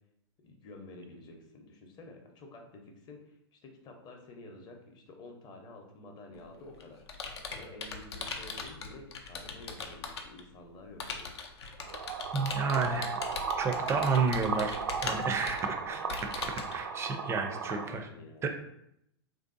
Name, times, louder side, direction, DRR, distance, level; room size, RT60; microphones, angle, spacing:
voice 1, 0.4-7.0 7.5-11.5 17.3-18.5, left 2 dB, 30° left, 2 dB, 0.7 m, -50 dB
Computer keyboard, 6.3-10.4 11.0-16.8, left 5 dB, 80° left, 0.5 m, -40 dB
sound 1, 11.8-17.8, right 6 dB, 80° right, 0.4 m, -35 dB
voice 2, 12.3-13.2 13.6-18.1 18.4-18.5, right 4 dB, 20° right, 5 dB, 0.4 m, -31 dB
3.3 x 2.6 x 2.5 m, 0.77 s
hypercardioid pair, 115°, 14 cm